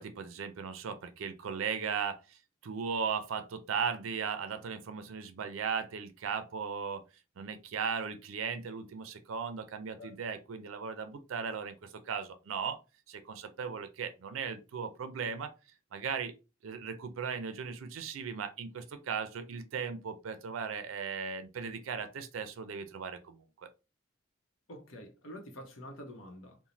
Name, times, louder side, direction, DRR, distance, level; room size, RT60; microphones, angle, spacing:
voice 1, 0.0-2.4 2.6-7.0 7.4-12.8 13.1-15.5 15.9-16.3 16.6-23.7, right 6 dB, 80° right, 0.4 m, -37 dB
voice 2, 24.7-26.6, equal, 80° left, 0.8 m, -47 dB
3.0 x 2.1 x 2.5 m
head